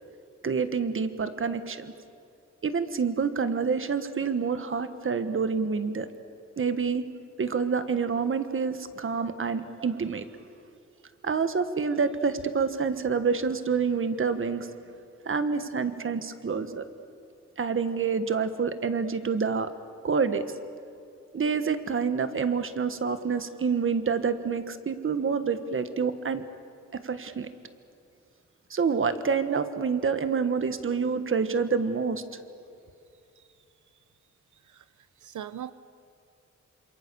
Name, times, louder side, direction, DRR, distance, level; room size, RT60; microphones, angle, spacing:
voice 1, 0.4-1.9 2.6-6.1 6.6-7.1 7.4-10.3 11.2-14.7 15.2-16.8 17.6-19.7 20.0-20.4 21.3-26.4 26.9-27.5 28.7-32.2, right 5 dB, 45° right, 10 dB, 1.4 m, -27 dB
voice 2, 35.2-35.7, right 10 dB, 90° right, 13 dB, 0.7 m, -40 dB
28.0 x 27.0 x 6.9 m, 2.5 s
wide cardioid pair, 175°, 29 cm